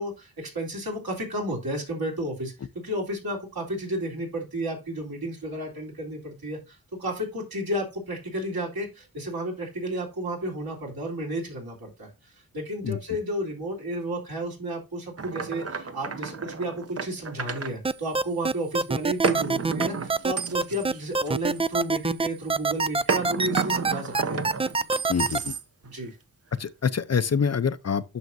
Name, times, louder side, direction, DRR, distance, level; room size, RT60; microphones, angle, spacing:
voice 1, 0.0-2.5 2.8-24.4 25.8-26.2, right 1 dB, 70° right, 3.5 m, -32 dB
sound 1, 15.2-17.7 19.2-21.9 23.1-25.9, right 5 dB, 40° right, 0.9 m, -32 dB
sound 2, 17.8-25.4, right 4 dB, 15° right, 0.4 m, -24 dB
voice 2, 25.1-25.5 26.6-28.0, left 6 dB, 40° left, 0.6 m, -25 dB
9.5 x 6.1 x 2.7 m
cardioid pair, 65°, 38 cm